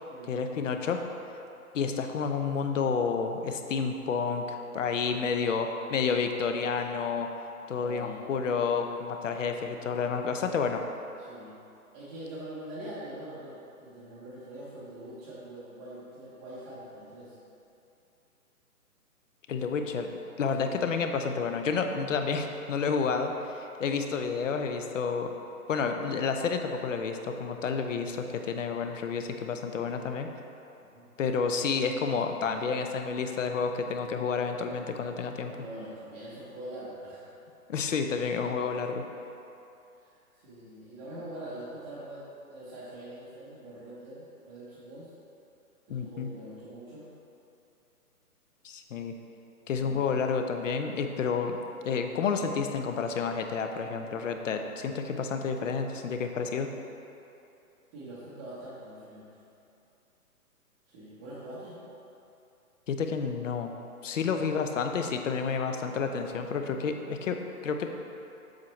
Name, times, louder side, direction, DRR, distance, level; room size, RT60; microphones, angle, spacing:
voice 1, 0.3-1.0 1.7-7.3 7.7-10.8 19.5-25.3 25.7-30.3 31.2-35.5 37.7-39.0 45.9-46.3 48.6-49.1 49.7-51.6 51.8-56.7 62.9-63.8 64.0-67.9, left 5 dB, 55° left, 5 dB, 0.7 m, -30 dB
voice 2, 5.0-5.8 7.8-8.2 11.2-11.6 11.9-17.4 20.5-20.7 30.8-31.1 35.5-37.3 40.0-45.1 45.9-47.1 49.8-50.2 57.9-59.3 60.9-61.8 64.1-64.5, right 1 dB, 10° right, -13 dB, 0.7 m, -44 dB
7.4 x 5.8 x 3.1 m, 2.8 s
hypercardioid pair, 150°, 45 cm